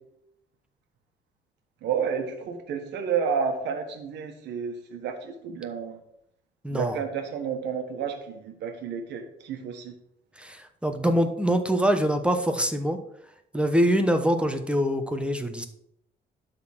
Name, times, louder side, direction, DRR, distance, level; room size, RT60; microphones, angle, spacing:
voice 1, 1.8-6.0 6.7-9.9, right 6 dB, 90° right, 5 dB, 1.5 m, -31 dB
voice 2, 6.6-7.0 10.4-13.0 13.5-15.7, equal, 5° right, 7 dB, 1.0 m, -24 dB
12.0 x 4.0 x 6.1 m, 0.77 s
cardioid pair, 95°, 18 cm